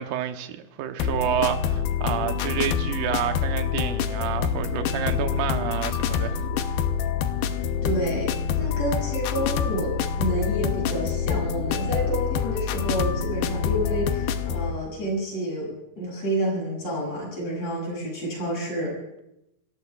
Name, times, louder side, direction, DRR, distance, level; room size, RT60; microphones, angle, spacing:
voice 1, 0.0-6.4, right 11 dB, 75° right, 1.9 m, -29 dB
sound 1, 1.0-14.7, left 7 dB, 75° left, 2.2 m, -26 dB
voice 2, 7.8-8.3 8.6-18.9, right 1 dB, 35° left, 9.0 m, -29 dB
28.5 x 20.5 x 2.4 m
omnidirectional pair, 5.1 m